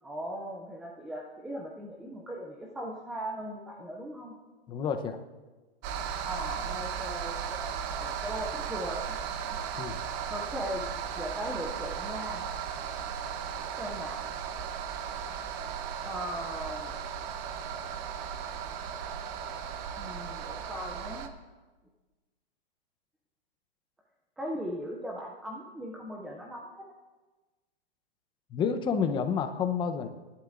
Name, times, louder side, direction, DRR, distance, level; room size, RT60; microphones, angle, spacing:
voice 1, 0.0-4.4 6.2-9.6 10.0-10.9 11.2-12.4 13.6-14.2 16.0-16.9 20.0-21.3 24.4-26.7, equal, ahead, -1 dB, 0.3 m, -39 dB
voice 2, 4.7-5.2 9.8-10.0 28.5-30.1, left 6 dB, 15° left, 7 dB, 0.7 m, -29 dB
sound 1, 5.8-21.3, right 7 dB, 30° right, 0.8 m, -36 dB
29.5 x 11.5 x 2.5 m, 1.2 s
hypercardioid pair, 145°, 31 cm